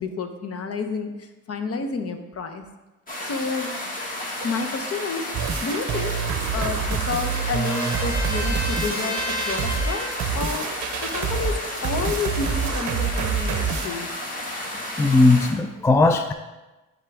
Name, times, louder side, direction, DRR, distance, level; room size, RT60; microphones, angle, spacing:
voice 1, 0.0-2.6 3.2-3.7 4.4-5.3 5.6-6.2 6.5-10.7 11.0-14.1, left 4 dB, 50° left, 7 dB, 0.8 m, -30 dB
sound 1, 3.1-15.5, left 1 dB, 30° left, 1.6 m, -32 dB
sound 2, 5.3-13.9, right 6 dB, 70° right, 0.6 m, -27 dB
Trumpet, 5.9-10.3, left 1 dB, 85° left, 1.5 m, -33 dB
voice 2, 15.0-16.3, left 3 dB, 10° left, 7 dB, 0.3 m, -17 dB
10.5 x 3.7 x 3.4 m, 1.1 s
cardioid pair, 90°, 30 cm